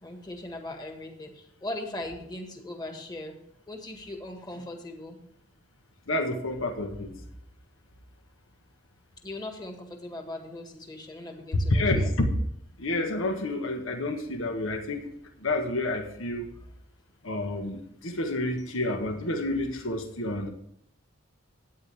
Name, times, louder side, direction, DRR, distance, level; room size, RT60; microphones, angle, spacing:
voice 1, 0.0-3.4 3.7-5.3 9.2-12.1 18.6-18.8, left 1 dB, 20° left, 3 dB, 1.8 m, -39 dB
voice 2, 6.1-7.2 11.7-12.3 12.8-15.1 15.4-16.5 17.2-20.5, left 1 dB, 80° left, 4 dB, 1.5 m, -29 dB
13.0 x 9.3 x 3.5 m, 0.72 s
head